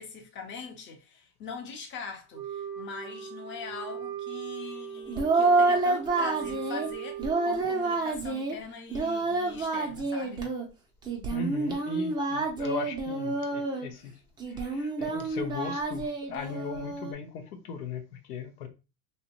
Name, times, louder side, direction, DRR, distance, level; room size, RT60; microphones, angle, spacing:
voice 1, 0.0-10.5, left 5 dB, 25° left, 0.7 m, -42 dB
Wind instrument woodwind instrument, 2.3-8.0, right 9 dB, 75° right, 0.7 m, -39 dB
Singing, 5.1-6.9 7.2-8.6 8.9-10.6 11.1-13.9 14.4-17.1, right 3 dB, 10° right, 0.4 m, -28 dB
voice 2, 11.3-14.1 14.5-18.7, left 6 dB, 90° left, 0.7 m, -38 dB
2.7 x 2.1 x 2.9 m
supercardioid pair, 115°, 44 cm